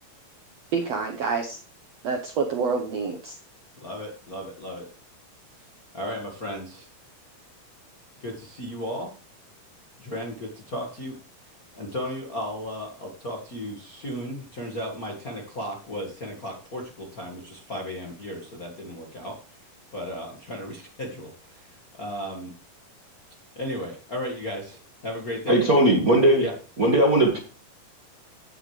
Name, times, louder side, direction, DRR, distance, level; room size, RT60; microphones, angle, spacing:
voice 1, 0.7-1.6 2.0-3.3, right 5 dB, 65° right, 3 dB, 1.6 m, -27 dB
voice 2, 3.8-4.9 5.6-5.7 5.9-6.9 8.2-9.1 10.0-11.2 11.8-22.5 23.5-25.7 26.4-26.5, equal, 35° left, -1 dB, 1.5 m, -35 dB
voice 3, 25.5-26.4 26.8-27.4, right 1 dB, 40° right, 0 dB, 1.4 m, -18 dB
16.0 x 7.7 x 3.3 m, 0.36 s
omnidirectional pair, 4.2 m